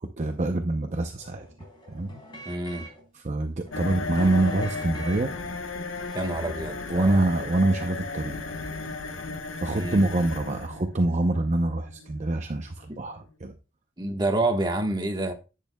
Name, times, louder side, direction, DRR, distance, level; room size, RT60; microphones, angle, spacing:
voice 1, 0.0-1.5 1.9-2.1 3.1-5.3 6.9-8.4 9.6-13.5, right 2 dB, 35° right, 0.6 m, -25 dB
sound 1, 1.2-3.0 3.6-5.4 6.0-6.2, right 2 dB, 25° left, 4.0 m, -43 dB
voice 2, 2.4-2.9 6.1-7.2 9.7-10.1 14.0-15.3, right 2 dB, 20° right, 1.3 m, -28 dB
sound 2, 3.7-13.3, left 3 dB, 85° left, 1.1 m, -36 dB
10.5 x 8.4 x 2.2 m
head